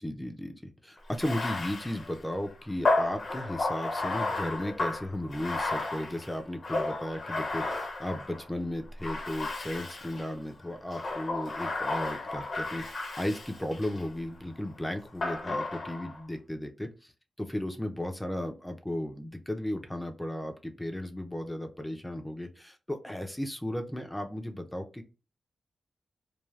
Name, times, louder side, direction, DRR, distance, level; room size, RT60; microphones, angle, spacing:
voice 1, 0.0-16.9 17.4-25.1, left 1 dB, 10° left, 5 dB, 0.5 m, -35 dB
Bathtub (filling or washing), 1.1-8.5 9.0-10.3 10.9-14.1 15.2-16.2, left 2 dB, 55° left, 0.7 m, -33 dB
3.2 x 2.3 x 2.3 m, 0.33 s
cardioid pair, 75°, 0 cm